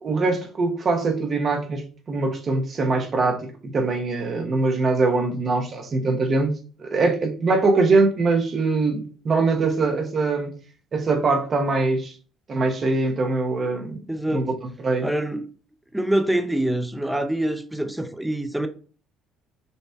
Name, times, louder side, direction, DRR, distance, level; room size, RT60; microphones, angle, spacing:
voice 1, 0.0-10.5 10.9-12.1 12.5-14.0 14.3-14.5 14.8-15.1, right 3 dB, 40° right, 1.0 m, -22 dB
voice 2, 14.1-14.5 15.0-15.5 15.9-18.7, right 1 dB, 5° right, 0.5 m, -25 dB
5.4 x 3.1 x 2.3 m
cardioid pair, 95°, 0 cm